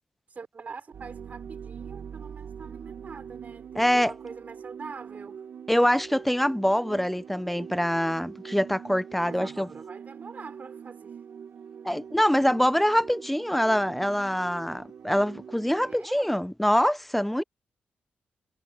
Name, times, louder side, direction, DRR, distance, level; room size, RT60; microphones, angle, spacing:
voice 1, 0.3-5.4 9.2-11.2 15.8-16.3, right 5 dB, 45° right, 2.8 m, -44 dB
sound 1, 0.9-15.9, right 7 dB, 65° right, 0.7 m, -43 dB
voice 2, 3.8-4.1 5.7-9.7 11.8-17.4, equal, 5° left, 0.4 m, -24 dB
cardioid pair, 75°, 4 cm